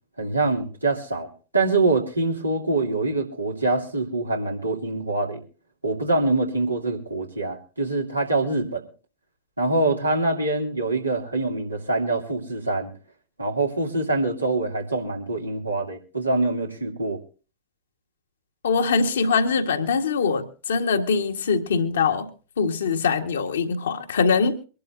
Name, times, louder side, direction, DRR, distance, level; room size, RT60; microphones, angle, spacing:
voice 1, 0.2-5.4 5.8-8.8 9.6-12.9 13.4-17.2, right 2 dB, 85° right, 2.7 m, -24 dB
voice 2, 18.6-22.3 22.6-24.6, left 5 dB, 65° left, 1.7 m, -23 dB
24.5 x 11.5 x 2.7 m
figure-of-eight pair, 90°, 0 cm